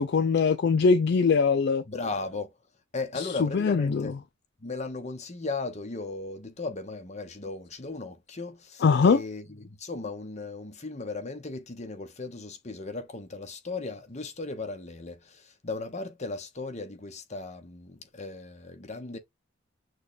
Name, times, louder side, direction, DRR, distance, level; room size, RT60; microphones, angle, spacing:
voice 1, 0.0-1.8 3.2-4.2 8.8-9.2, left 5 dB, 55° left, 0.4 m, -22 dB
voice 2, 1.9-2.5 2.9-4.1 4.6-19.2, left 3 dB, 35° left, 1.0 m, -36 dB
6.4 x 2.4 x 3.2 m
head